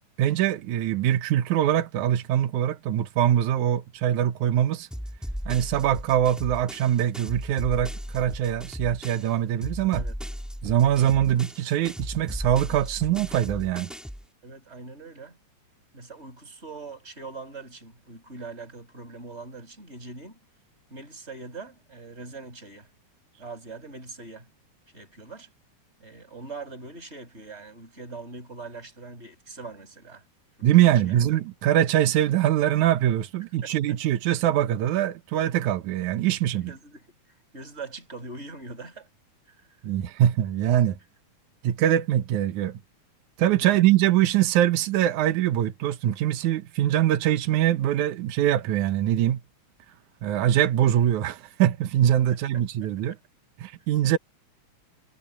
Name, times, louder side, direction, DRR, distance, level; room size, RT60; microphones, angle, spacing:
voice 1, 0.2-4.9 5.5-10.0 10.6-13.9 30.6-36.7 39.8-41.0 41.6-42.8 43.4-49.4 50.2-53.2 53.6-54.2, right 11 dB, 80° right, 2.5 m, -23 dB
sound 1, 4.9-9.3 9.6-14.2, equal, ahead, 2.7 m, -36 dB
voice 2, 14.4-15.4 15.9-20.4 20.9-22.9 23.4-24.5 24.9-25.5 26.0-30.2 30.6-31.2 33.6-33.7 36.7-37.1 37.5-39.1 43.6-43.9 52.3-52.4, right 3 dB, 20° right, 7.3 m, -42 dB
omnidirectional pair, 3.4 m